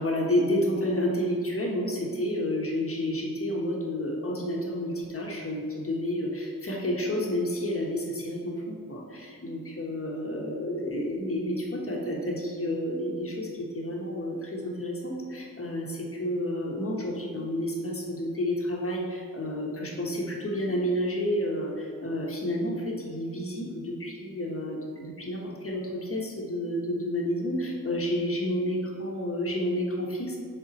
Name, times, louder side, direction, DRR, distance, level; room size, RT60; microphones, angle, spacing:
voice 1, 0.0-30.4, left 1 dB, 40° left, -2 dB, 1.3 m, -30 dB
6.8 x 4.3 x 4.1 m, 2.1 s
wide cardioid pair, 85°, 34 cm